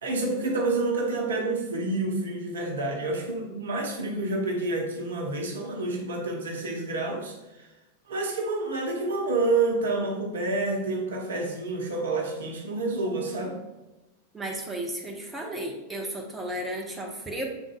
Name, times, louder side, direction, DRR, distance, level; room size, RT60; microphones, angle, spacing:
voice 1, 0.0-7.7 8.1-13.6, right 2 dB, 65° right, 1 dB, 0.8 m, -28 dB
voice 2, 14.3-17.4, right 1 dB, 10° right, -1 dB, 0.8 m, -34 dB
6.2 x 3.8 x 2.2 m, 1.1 s
figure-of-eight pair, 90°, 0 cm